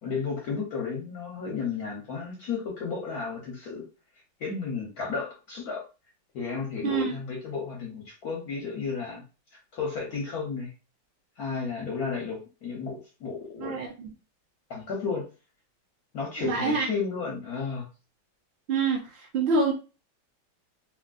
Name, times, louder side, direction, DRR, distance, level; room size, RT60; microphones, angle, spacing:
voice 1, 0.0-3.8 4.4-5.8 6.3-9.2 9.7-10.7 11.4-13.8 14.7-15.3 16.1-17.9, left 5 dB, 65° left, -1 dB, 1.0 m, -33 dB
voice 2, 6.8-7.1 13.6-14.1 16.4-16.9 18.7-19.7, right 4 dB, 80° right, 1 dB, 0.5 m, -26 dB
3.0 x 2.9 x 2.4 m, 0.32 s
omnidirectional pair, 2.1 m